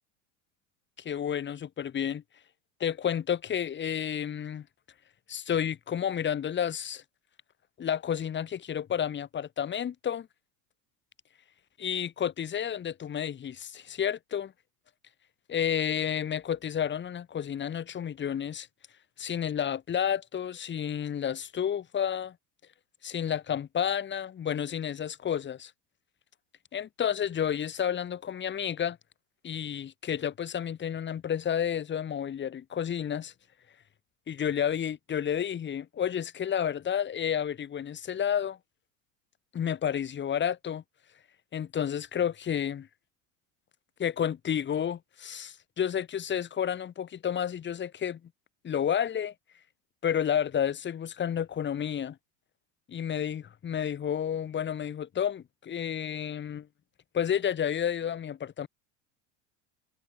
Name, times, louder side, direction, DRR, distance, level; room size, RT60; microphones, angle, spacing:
voice 1, 1.0-2.2 2.8-4.7 5.3-7.0 7.8-10.3 11.8-14.5 15.5-18.7 19.2-22.4 23.0-25.7 26.7-29.0 29.4-33.3 34.3-38.6 39.5-40.8 41.5-42.9 44.0-48.2 48.6-49.3 50.0-52.2 52.9-56.7 57.1-58.7, left 9 dB, 30° left, 1.8 m, -31 dB
hypercardioid pair, 95°, 37 cm